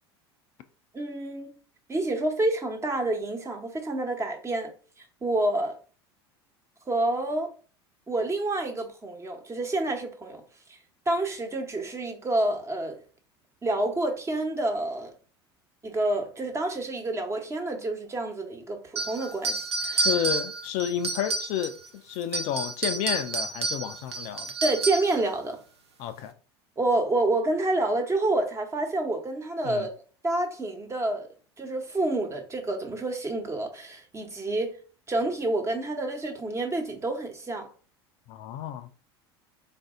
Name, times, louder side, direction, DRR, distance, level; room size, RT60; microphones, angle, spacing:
voice 1, 0.9-1.5 1.9-4.7 5.2-5.7 6.9-7.5 8.1-10.4 11.1-13.0 13.6-15.1 15.8-20.1 24.6-25.6 26.8-29.9 30.2-31.3 31.6-34.8 35.1-37.7, right 2 dB, 20° right, 1.1 m, -28 dB
sound 1, 19.0-21.9 22.2-25.2, right 3 dB, 90° right, 0.5 m, -30 dB
voice 2, 20.0-21.7 22.0-24.5 26.0-26.3 29.6-29.9 38.3-38.9, left 10 dB, 55° left, 0.5 m, -31 dB
4.0 x 2.6 x 3.7 m
hypercardioid pair, 80°, 13 cm